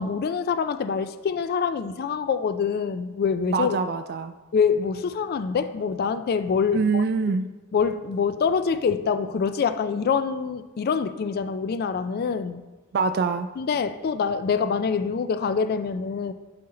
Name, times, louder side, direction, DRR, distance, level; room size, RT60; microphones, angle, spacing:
voice 1, 0.0-3.8 4.5-7.0 7.7-12.6 13.6-16.3, left 6 dB, 50° left, 12 dB, 0.3 m, -25 dB
voice 2, 3.5-4.3 6.7-7.4 12.9-13.5, right 4 dB, 50° right, 9 dB, 0.3 m, -24 dB
11.0 x 4.4 x 3.8 m, 1.3 s
head